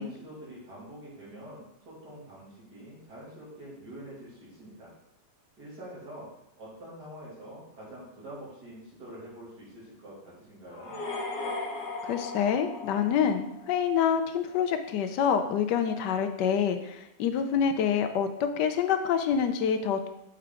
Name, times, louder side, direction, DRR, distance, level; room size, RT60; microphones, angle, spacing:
voice 1, 0.0-4.9 5.6-6.3 6.6-11.0, right 1 dB, 70° right, -7 dB, 3.0 m, -46 dB
sound 1, 10.7-13.7, left 2 dB, 50° left, 1.0 m, -37 dB
voice 2, 12.0-20.1, left 7 dB, 75° left, 8 dB, 1.2 m, -27 dB
6.8 x 4.6 x 3.7 m, 0.85 s
omnidirectional pair, 1.9 m